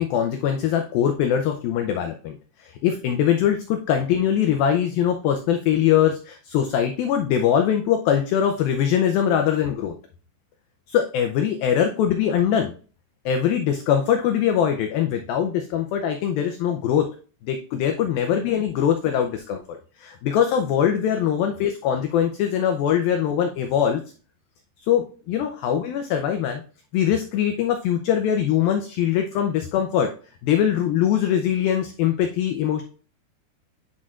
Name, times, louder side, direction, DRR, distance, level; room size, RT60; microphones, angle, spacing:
voice 1, 0.0-10.0 10.9-12.7 13.3-17.1 17.4-24.0 24.8-26.6 26.9-30.1 30.4-32.8, left 9 dB, 85° left, 5 dB, 2.0 m, -22 dB
8.8 x 6.3 x 2.4 m, 0.39 s
omnidirectional pair, 5.0 m